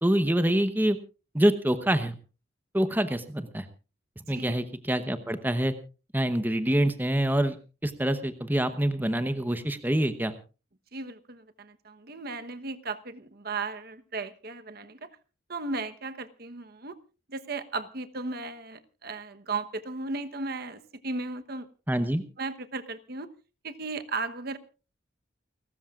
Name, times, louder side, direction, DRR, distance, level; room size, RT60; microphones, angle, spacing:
voice 1, 0.0-1.0 1.3-2.1 2.7-3.7 4.3-5.7 6.1-7.6 7.8-10.3 21.9-22.2, right 1 dB, 10° right, 10 dB, 0.9 m, -26 dB
voice 2, 10.9-15.1 15.5-17.0 17.3-21.7 22.0-22.1 22.4-23.3 23.6-24.6, right 3 dB, 50° right, 10 dB, 1.1 m, -36 dB
29.5 x 13.5 x 2.4 m, 0.34 s
head